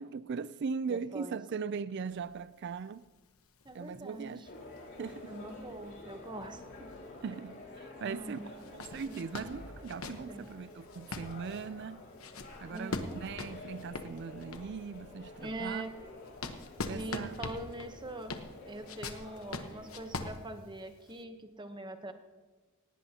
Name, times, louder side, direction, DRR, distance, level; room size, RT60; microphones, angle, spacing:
voice 1, 0.0-3.1 3.7-4.6 5.0-5.4 7.2-12.0 12.6-15.8 16.9-17.4, right 5 dB, 50° right, 0.4 m, -39 dB
voice 2, 0.9-1.4 3.6-4.5 5.3-6.9 8.0-8.5 9.0-9.1 10.3-10.4 12.7-13.3 15.4-15.9 16.8-18.3 18.7-22.1, right 2 dB, 20° right, 0.9 m, -43 dB
sound 1, 2.1-7.4 7.7-7.8 8.5-14.9 15.4-21.2, left 3 dB, 70° left, 1.1 m, -43 dB
sound 2, 4.4-20.1, left 2 dB, 55° left, 4.4 m, -50 dB
18.5 x 17.5 x 2.9 m
head